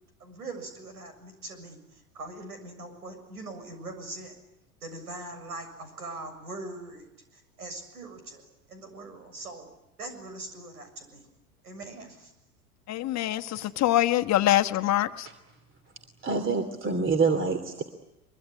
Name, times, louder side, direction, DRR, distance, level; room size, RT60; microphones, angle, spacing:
voice 1, 0.2-4.3 4.8-7.1 7.3-9.7 10.0-11.3 11.6-12.3 13.2-13.7, right 2 dB, 85° right, 8 dB, 6.9 m, -42 dB
voice 2, 12.9-15.3, left 14 dB, 35° left, 7 dB, 1.4 m, -24 dB
voice 3, 16.2-17.8, right 4 dB, 25° right, 9 dB, 2.9 m, -26 dB
24.0 x 23.5 x 9.9 m, 0.92 s
hypercardioid pair, 90°, 45 cm